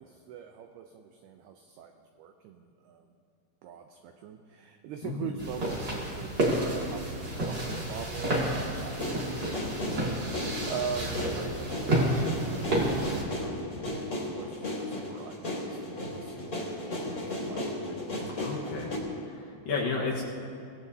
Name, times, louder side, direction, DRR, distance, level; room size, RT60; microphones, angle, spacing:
voice 1, 0.0-1.9 2.2-3.0 3.6-10.0 10.7-17.7, right 7 dB, 85° right, 5 dB, 2.2 m, -42 dB
sound 1, 5.4-13.2, right 1 dB, 35° right, 1.9 m, -30 dB
sound 2, 8.9-19.0, left 1 dB, 30° left, 3.2 m, -35 dB
voice 2, 18.4-18.9 19.2-20.2, left 4 dB, 65° left, -3 dB, 2.5 m, -32 dB
24.5 x 16.5 x 2.8 m, 2.5 s
omnidirectional pair, 5.3 m